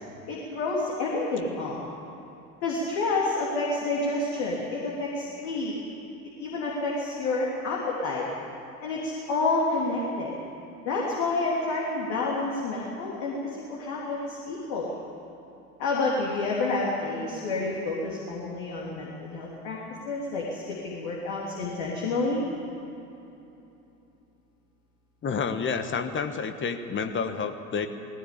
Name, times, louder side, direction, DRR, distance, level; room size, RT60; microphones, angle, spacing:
voice 1, 0.3-1.8 2.6-5.7 6.4-8.3 8.8-10.3 10.8-14.9 15.8-19.8 20.0-22.4, left 3 dB, 55° left, -3 dB, 3.5 m, -29 dB
voice 2, 25.2-27.9, left 5 dB, 25° left, 8 dB, 1.4 m, -29 dB
19.5 x 17.5 x 8.7 m, 3.0 s
figure-of-eight pair, 75°, 47 cm